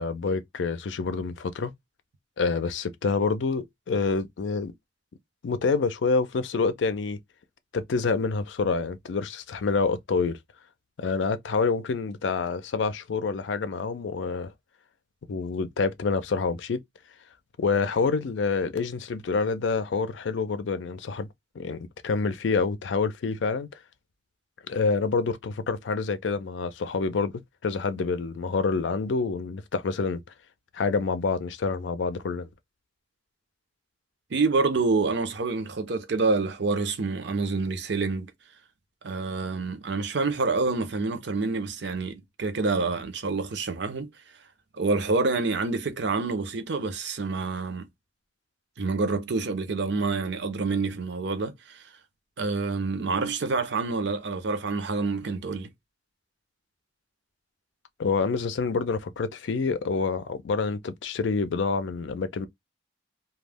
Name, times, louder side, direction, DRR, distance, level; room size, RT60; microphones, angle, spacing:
voice 1, 0.0-1.7 2.4-4.7 5.4-7.2 7.7-10.4 11.0-14.5 15.3-16.8 17.6-21.3 21.6-23.8 24.7-27.3 27.6-30.2 30.7-32.5 58.0-62.5, left 4 dB, 80° left, 0.4 m, -27 dB
voice 2, 34.3-38.3 39.0-44.1 44.7-47.9 48.8-51.9 52.4-55.7, right 3 dB, 65° right, 0.6 m, -27 dB
2.3 x 2.1 x 3.3 m
head